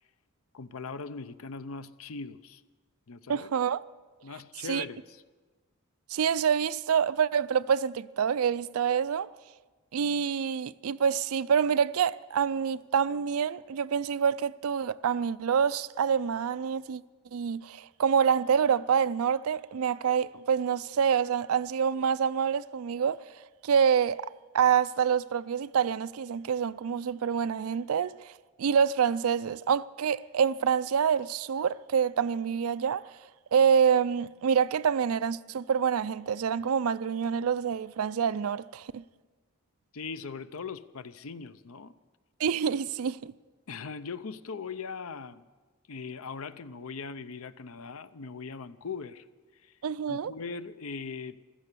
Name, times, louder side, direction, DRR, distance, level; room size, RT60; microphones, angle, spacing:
voice 1, 0.5-2.6 3.1-3.5 4.2-5.2 39.9-41.9 43.7-45.5 45.9-49.3 49.5-49.7 50.1-51.4, left 5 dB, 75° left, 0.6 m, -40 dB
voice 2, 3.3-3.8 4.7-4.8 6.1-9.3 9.9-17.0 17.3-23.2 23.6-24.3 24.5-28.3 28.6-33.1 33.5-39.0 42.4-43.3 49.8-50.3, right 7 dB, 80° right, 0.4 m, -26 dB
15.5 x 13.5 x 6.8 m
head